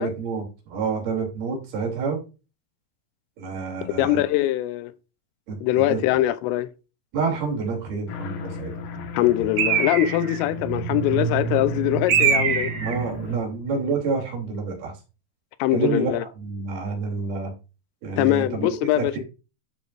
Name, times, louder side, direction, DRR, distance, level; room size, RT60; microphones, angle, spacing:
voice 1, 0.0-2.2 3.4-4.2 5.5-5.6 5.9-6.0 7.1-9.3 12.8-14.9 15.7-17.5 18.0-18.7 19.0-19.2, right 4 dB, 55° right, 4.5 m, -28 dB
voice 2, 3.9-4.9 5.6-6.7 9.1-12.7 15.6-16.2 18.2-19.2, left 14 dB, 85° left, 3.3 m, -22 dB
sound 1, 8.1-13.4, left 6 dB, 60° left, 2.7 m, -36 dB
Bird, 9.6-10.4 12.1-13.0, right 7 dB, 70° right, 1.7 m, -22 dB
sound 2, 10.5-14.6, right 8 dB, 85° right, 3.3 m, -31 dB
12.0 x 7.2 x 2.5 m
omnidirectional pair, 5.6 m